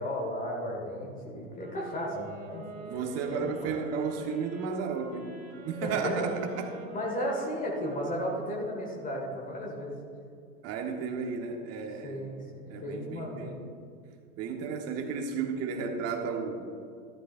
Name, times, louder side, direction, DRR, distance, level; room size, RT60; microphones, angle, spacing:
voice 1, 0.0-3.8 5.8-6.3 6.9-9.9 12.0-13.6, equal, 20° left, -1 dB, 1.9 m, -35 dB
sound 1, 1.5-9.2, right 3 dB, 20° right, 2.0 m, -45 dB
voice 2, 2.8-5.3 5.6-6.8 10.6-12.2 12.7-13.6 14.4-16.6, right 5 dB, 35° right, 4 dB, 1.4 m, -33 dB
13.0 x 11.5 x 2.6 m, 2.4 s
hypercardioid pair, 100°, 41 cm